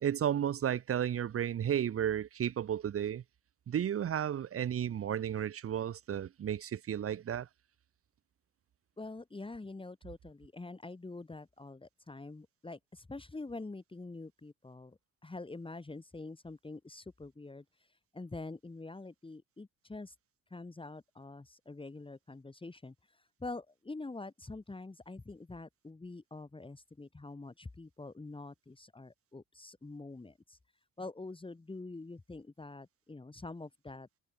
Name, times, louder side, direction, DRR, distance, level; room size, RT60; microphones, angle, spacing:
voice 1, 0.0-3.2 3.7-7.5, right 9 dB, 40° right, 0.9 m, -33 dB
voice 2, 9.0-20.1 20.5-30.6 31.0-34.2, left 3 dB, 15° left, 3.2 m, -46 dB
cardioid pair, 130°, 36 cm